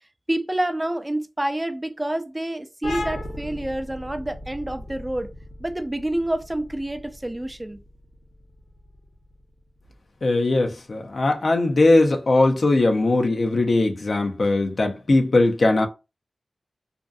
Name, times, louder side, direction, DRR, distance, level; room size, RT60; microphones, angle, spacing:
voice 1, 0.3-5.3 5.6-7.8, right 1 dB, 20° right, 0.4 m, -28 dB
sound 1, 2.8-10.1, left 1 dB, 85° left, 0.9 m, -37 dB
voice 2, 10.2-15.9, left 2 dB, 65° left, 0.6 m, -20 dB
2.6 x 2.5 x 2.3 m
cardioid pair, 50°, 0 cm